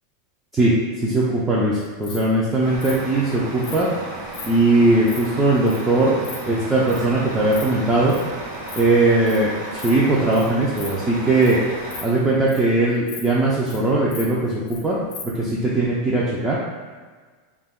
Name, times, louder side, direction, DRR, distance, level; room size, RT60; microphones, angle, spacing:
voice 1, 1.0-3.9 4.4-6.2 6.5-8.2 8.7-11.6 12.0-15.0 15.4-16.6, right 2 dB, 10° right, -7 dB, 0.3 m, -19 dB
Insect, 1.8-2.2 2.8-3.0 3.6-3.8 4.3-4.5 4.8-5.2 5.7-5.8 6.0-6.4 6.9-7.0 7.4-7.6 7.9-8.2 8.6-8.8 9.1-9.4 9.8-10.0 10.3-10.4 10.8-10.9 11.3-11.5 11.8-12.7 13.1-13.2 13.5-13.8 14.1-14.8 15.1-15.2, left 5 dB, 65° left, 0.6 m, -37 dB
Truck, 2.6-12.0, right 2 dB, 55° right, 0.7 m, -34 dB
2.3 x 2.2 x 3.5 m, 1.5 s
supercardioid pair, 160°, 0 cm